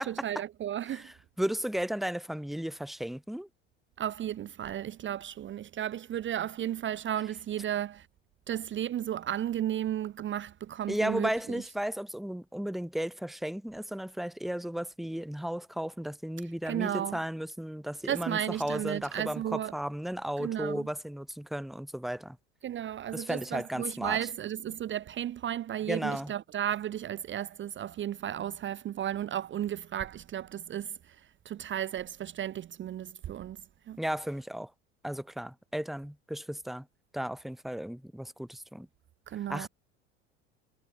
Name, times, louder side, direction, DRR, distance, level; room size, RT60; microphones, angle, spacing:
voice 1, 0.0-1.1 4.0-8.1 8.5-11.6 16.6-17.2 18.1-19.7 20.4-20.9 22.6-33.6 33.9-34.0 39.3-39.7, right 11 dB, 35° right, 1.0 m, -34 dB
voice 2, 0.9-3.5 10.9-22.4 23.1-24.2 25.9-26.3 34.0-34.7 35.0-36.9 37.1-38.9 39.5-39.7, equal, ahead, 1.5 m, -34 dB
figure-of-eight pair, 70°, 35 cm